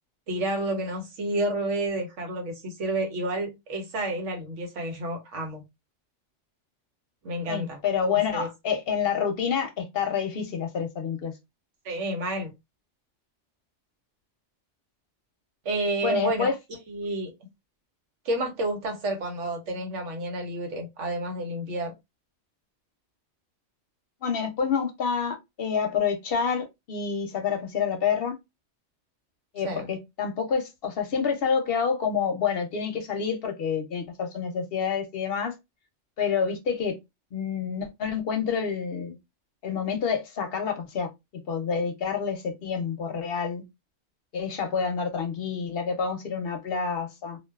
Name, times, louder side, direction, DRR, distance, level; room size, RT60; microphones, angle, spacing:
voice 1, 0.3-5.6 7.2-7.8 8.1-8.5 11.8-12.5 15.6-16.6 16.9-17.3 18.2-21.9 29.6-29.9, right 1 dB, 85° right, 1.2 m, -30 dB
voice 2, 7.5-11.3 16.0-16.5 24.2-28.4 29.5-35.5 36.2-37.0 37.3-39.2 39.6-41.1 41.5-43.6 44.3-47.4, left 6 dB, 60° left, 0.7 m, -28 dB
2.5 x 2.2 x 2.2 m
omnidirectional pair, 1.2 m